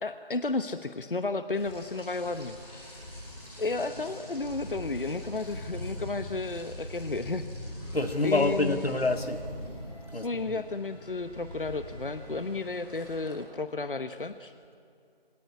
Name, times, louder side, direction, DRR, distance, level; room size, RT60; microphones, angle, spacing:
voice 1, 0.0-2.6 3.6-7.5 8.2-8.9 10.1-14.5, left 3 dB, 60° left, 10 dB, 1.0 m, -32 dB
Rain, 1.5-13.3, left 1 dB, 10° left, 5.2 m, -42 dB
voice 2, 7.9-9.4 10.1-10.6, left 2 dB, 85° left, 8 dB, 2.1 m, -27 dB
24.0 x 18.0 x 9.9 m, 2.5 s
figure-of-eight pair, 170°, 30 cm